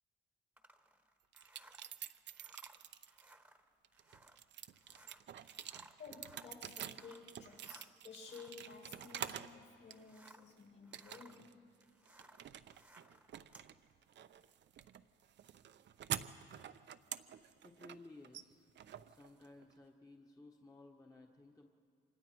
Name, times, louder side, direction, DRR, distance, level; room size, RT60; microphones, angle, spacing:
sound 1, 0.6-10.5 10.8-13.7, right 1 dB, 5° right, 1.2 m, -63 dB
sound 2, 1.3-3.3 3.8-9.6 9.9-10.5 10.9-11.5 11.8-19.7, right 10 dB, 65° right, 0.7 m, -48 dB
voice 1, 5.9-11.7, left 5 dB, 60° left, -3 dB, 7.1 m, -54 dB
voice 2, 17.6-18.7 19.1-21.7, left 2 dB, 15° left, 1 dB, 1.4 m, -57 dB
28.5 x 25.0 x 4.6 m, 2.4 s
cardioid pair, 90°, 20 cm